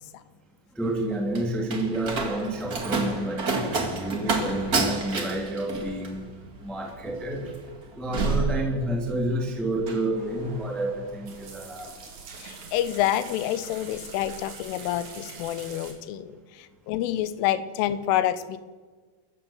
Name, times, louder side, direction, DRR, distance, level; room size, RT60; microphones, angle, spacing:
voice 1, 0.7-6.2 6.6-7.5 7.9-11.9, right 1 dB, ahead, 1 dB, 1.1 m, -29 dB
Slam, 0.8-9.3 9.6-10.1, right 3 dB, 65° right, 0.9 m, -29 dB
sound 1, 10.2-15.9, right 4 dB, 45° right, 3.8 m, -44 dB
voice 2, 12.4-18.6, left 12 dB, 90° left, 14 dB, 3.5 m, -28 dB
26.5 x 14.5 x 7.2 m, 1.5 s
omnidirectional pair, 5.5 m